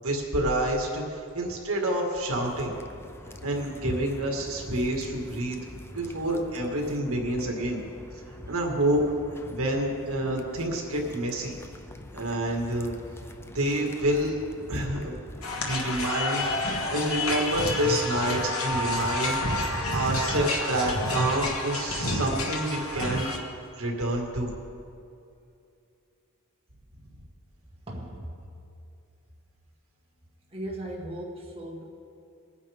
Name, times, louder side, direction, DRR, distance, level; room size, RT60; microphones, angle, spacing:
voice 1, 0.0-2.7 3.4-5.6 5.9-7.9 8.5-9.0 9.5-11.6 12.1-12.9 13.5-14.4 14.7-15.2 15.5-16.5 16.9-23.3 23.8-24.5, right 1 dB, 70° right, 0 dB, 2.1 m, -28 dB
sound 1, 2.3-15.5, left 1 dB, 10° left, 0.5 m, -44 dB
sound 2, 15.4-23.4, left 1 dB, 65° left, 1.5 m, -29 dB
voice 2, 27.9-28.5 30.5-31.8, right 1 dB, 25° right, -3 dB, 1.7 m, -37 dB
22.0 x 9.7 x 3.7 m, 2.6 s
head